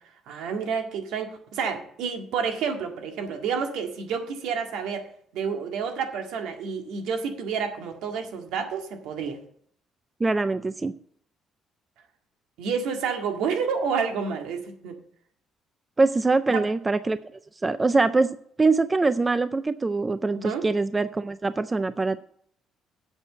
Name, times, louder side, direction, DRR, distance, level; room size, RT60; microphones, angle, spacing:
voice 1, 0.3-5.1 5.3-9.4 12.6-15.0 16.5-16.6 20.3-20.6, right 6 dB, 80° right, 4 dB, 1.8 m, -29 dB
voice 2, 10.2-10.9 16.0-17.2 17.6-18.3 18.6-22.2, right 3 dB, 15° right, 13 dB, 0.3 m, -23 dB
8.1 x 6.2 x 7.8 m, 0.62 s
cardioid pair, 170°, 0 cm